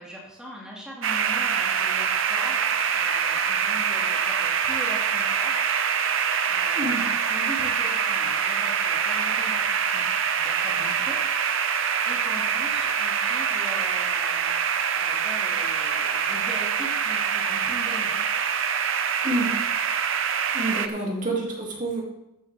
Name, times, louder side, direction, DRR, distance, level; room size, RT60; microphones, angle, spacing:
voice 1, 0.0-5.7 6.5-10.1 10.4-11.2 12.1-14.6 15.0-18.1 20.8-21.1, equal, 5° right, -5 dB, 2.0 m, -40 dB
sound 1, 1.0-20.9, right 7 dB, 60° right, 0.7 m, -25 dB
voice 2, 19.2-19.5 20.5-22.0, right 2 dB, 35° right, -2 dB, 2.5 m, -28 dB
13.5 x 10.0 x 3.4 m, 0.91 s
head